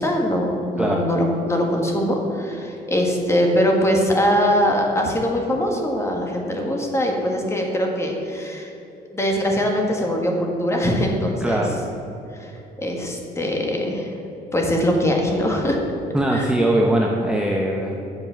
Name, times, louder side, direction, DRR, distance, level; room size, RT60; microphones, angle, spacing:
voice 1, 0.0-8.7 9.1-11.6 12.3-12.5 12.8-14.1 14.5-15.8 16.3-16.5, equal, 15° left, 1 dB, 1.7 m, -22 dB
voice 2, 11.4-11.8 16.1-18.0, right 1 dB, 5° right, -1 dB, 0.8 m, -21 dB
8.2 x 7.1 x 6.3 m, 2.8 s
cardioid pair, 110°, 17 cm